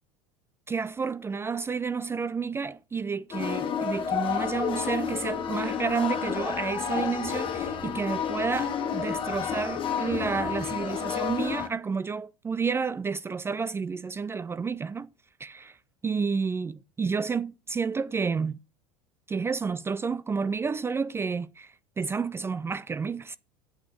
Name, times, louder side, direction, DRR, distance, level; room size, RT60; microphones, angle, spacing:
voice 1, 0.7-15.1 15.4-15.8 16.0-18.6 19.3-23.4, right 5 dB, 15° right, 0.4 m, -30 dB
sound 1, 3.3-11.7, left 8 dB, 35° left, 1.8 m, -30 dB
8.7 x 6.1 x 6.3 m
figure-of-eight pair, 75°, 15 cm